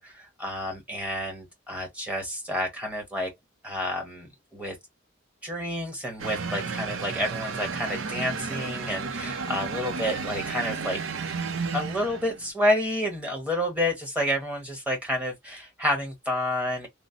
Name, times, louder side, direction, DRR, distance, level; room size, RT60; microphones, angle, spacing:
voice 1, 0.0-3.3 3.6-4.8 5.4-11.0 11.7-16.9, left 1 dB, 5° right, 1.0 m, -29 dB
sound 1, 6.2-12.5, right 5 dB, 85° right, 0.6 m, -33 dB
3.1 x 2.0 x 2.5 m
head